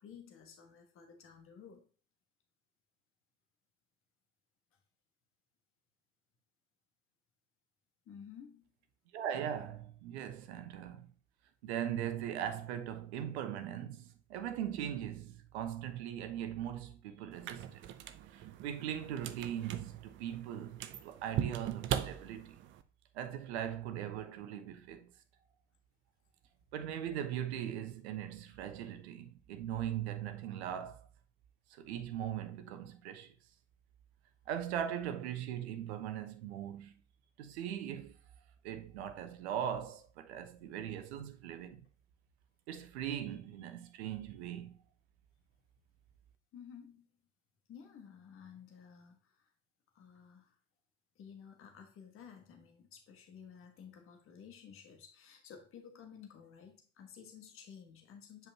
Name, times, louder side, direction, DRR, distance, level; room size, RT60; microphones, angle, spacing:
voice 1, 0.0-1.9 8.0-8.7 46.5-47.1 47.7-49.5 49.9-50.6 51.1-58.5, left 7 dB, 35° left, 1.6 m, -54 dB
voice 2, 9.1-11.1 11.6-17.8 18.3-22.6 23.1-25.1 26.7-31.1 31.8-33.3 34.5-36.9 37.4-38.2 38.6-41.8 42.7-44.8, right 10 dB, 60° right, 1.0 m, -40 dB
sound 1, 17.3-22.8, right 10 dB, 30° right, 0.6 m, -40 dB
9.1 x 5.2 x 2.8 m
figure-of-eight pair, 70°, 38 cm